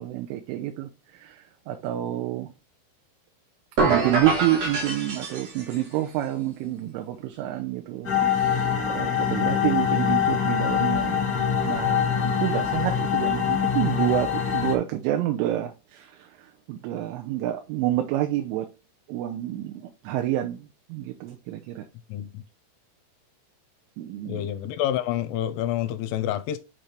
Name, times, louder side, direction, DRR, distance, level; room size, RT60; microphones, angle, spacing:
voice 1, 0.0-2.5 3.8-11.4 11.6-18.7 19.1-21.9 24.0-24.5, right 13 dB, 80° right, 3.2 m, -28 dB
sound 1, 3.8-5.9, right 3 dB, 60° right, 1.7 m, -25 dB
sound 2, 8.0-14.7, left 8 dB, 65° left, 0.8 m, -24 dB
voice 2, 24.3-26.6, left 12 dB, 85° left, 3.2 m, -28 dB
8.7 x 3.4 x 4.4 m
omnidirectional pair, 5.8 m